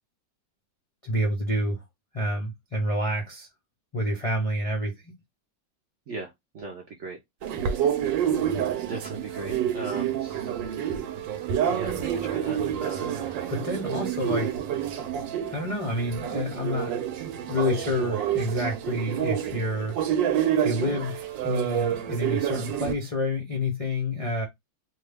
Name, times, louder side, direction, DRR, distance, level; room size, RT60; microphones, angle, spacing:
voice 1, 1.0-1.8 2.1-3.5 3.9-5.1 13.5-14.6 15.5-17.0 17.5-20.0 20.6-24.4, left 1 dB, 60° left, 0.3 m, -28 dB
voice 2, 6.1-7.2 7.5-10.7 11.6-13.3, right 3 dB, 65° right, 0.7 m, -39 dB
sound 1, 7.4-22.9, right 9 dB, 85° right, 1.3 m, -28 dB
2.9 x 2.3 x 3.3 m
omnidirectional pair, 2.0 m